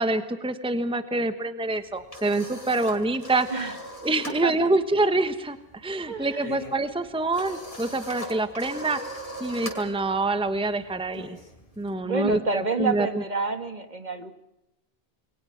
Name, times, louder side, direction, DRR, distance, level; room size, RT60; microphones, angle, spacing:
voice 1, 0.0-3.7 4.0-9.0 9.4-11.4 11.8-13.2, right 2 dB, 5° right, 10 dB, 1.2 m, -26 dB
sound 1, 1.7-4.4 4.7-5.0 5.3-11.9, left 1 dB, 35° left, 4.8 m, -40 dB
voice 2, 6.1-6.5 12.0-14.3, right 4 dB, 45° right, 8 dB, 1.8 m, -28 dB
28.5 x 23.0 x 5.9 m, 0.90 s
omnidirectional pair, 1.0 m